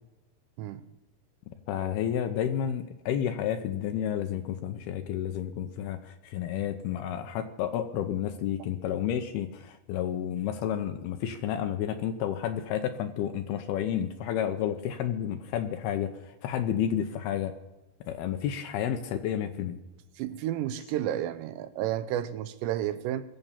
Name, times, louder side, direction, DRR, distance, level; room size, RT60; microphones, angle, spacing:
voice 1, 1.5-16.1 16.4-17.5 18.1-19.8, left 10 dB, 75° left, 2.5 m, -31 dB
voice 2, 20.2-23.2, right 12 dB, 80° right, 2.9 m, -31 dB
21.5 x 7.9 x 7.3 m
omnidirectional pair, 5.1 m